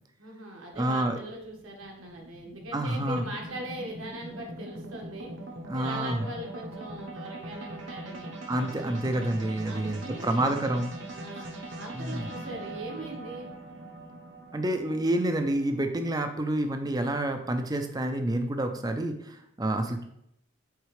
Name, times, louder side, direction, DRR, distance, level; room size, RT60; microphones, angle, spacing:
voice 1, 0.2-5.3 5.7-8.3 9.6-10.5 11.1-13.5, right 1 dB, 85° right, 0 dB, 1.5 m, -40 dB
sound 1, 0.7-17.1, right 1 dB, 60° right, 1.0 m, -42 dB
voice 2, 0.8-1.2 2.7-3.2 5.7-6.2 8.5-10.9 11.9-12.3 14.5-20.0, right 1 dB, 20° right, 6 dB, 0.5 m, -28 dB
8.1 x 3.6 x 3.3 m, 0.75 s
head